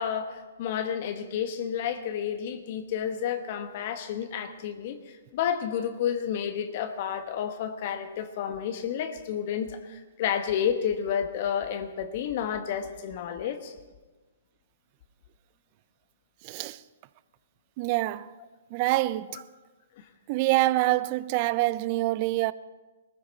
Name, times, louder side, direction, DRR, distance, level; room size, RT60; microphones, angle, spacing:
voice 1, 0.0-13.7 20.0-20.1, left 8 dB, 45° left, 1.2 m, -31 dB
voice 2, 16.4-16.8 17.8-18.3 18.7-19.4 20.3-22.5, right 18 dB, 40° right, 0.5 m, -26 dB
20.0 x 14.5 x 4.3 m
figure-of-eight pair, 125°, 0 cm